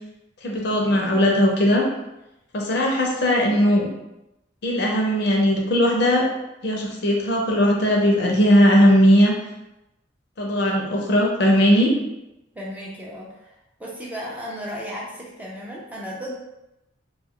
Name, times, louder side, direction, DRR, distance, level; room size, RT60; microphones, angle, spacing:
voice 1, 0.4-1.8 2.5-3.9 4.6-6.3 6.6-9.3 10.4-11.9, equal, 60° left, -1 dB, 0.6 m, -18 dB
voice 2, 12.5-13.5 13.8-16.4, equal, 10° right, -5 dB, 0.4 m, -34 dB
2.3 x 2.3 x 3.6 m, 0.92 s
head